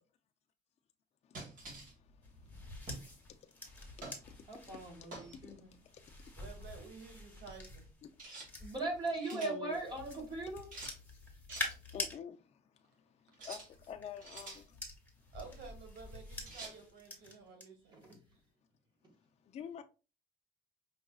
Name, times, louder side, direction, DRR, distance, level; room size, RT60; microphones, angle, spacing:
voice 1, 1.2-6.2 8.4-8.7 9.3-9.8 11.9-12.7 13.4-14.8 19.4-19.8, left 8 dB, 40° left, 0.4 m, -50 dB
sound 1, 1.3-1.9 2.9-3.1 4.0-4.2 5.1-5.4 8.2-8.5 9.0-9.5 10.7-11.0 11.5-11.8 13.3-13.7 14.2-14.6 16.5-16.8, right 2 dB, 50° right, 2.0 m, -47 dB
sound 2, 1.6-9.1 9.7-12.2 13.4-17.6 18.0-18.4, left 1 dB, 10° left, 1.2 m, -47 dB
voice 2, 4.5-5.7 8.6-10.6 17.9-18.1, right 3 dB, 25° right, 1.7 m, -39 dB
voice 3, 6.4-7.9 11.6-11.8 15.3-18.0, right 5 dB, 85° right, 1.4 m, -52 dB
5.4 x 2.6 x 2.3 m
cardioid pair, 110°, 17 cm